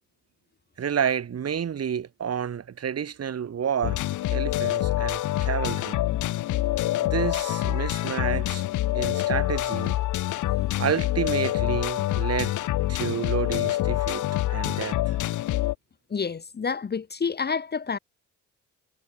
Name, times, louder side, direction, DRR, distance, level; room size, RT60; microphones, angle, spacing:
voice 1, 0.8-4.0 4.3-6.0 7.0-8.6 8.9-9.9 10.8-12.6 12.9-14.2 14.5-15.2, right 8 dB, 55° right, 6.1 m, -30 dB
sound 1, 3.8-15.7, left 15 dB, 80° left, 1.3 m, -26 dB
voice 2, 16.1-18.0, left 5 dB, 35° left, 1.4 m, -29 dB
cardioid pair, 90°, 30 cm